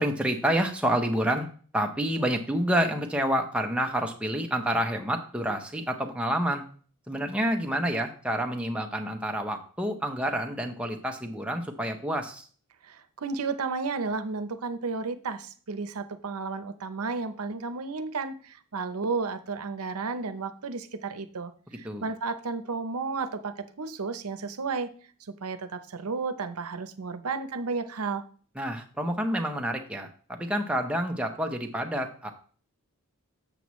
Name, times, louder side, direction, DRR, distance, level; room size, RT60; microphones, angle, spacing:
voice 1, 0.0-1.5 1.7-6.6 7.1-12.5 21.8-22.1 28.5-32.3, equal, 5° right, 3 dB, 0.8 m, -28 dB
voice 2, 12.8-24.9 25.4-28.2, right 4 dB, 85° right, 11 dB, 0.7 m, -33 dB
7.8 x 7.0 x 3.1 m, 0.44 s
head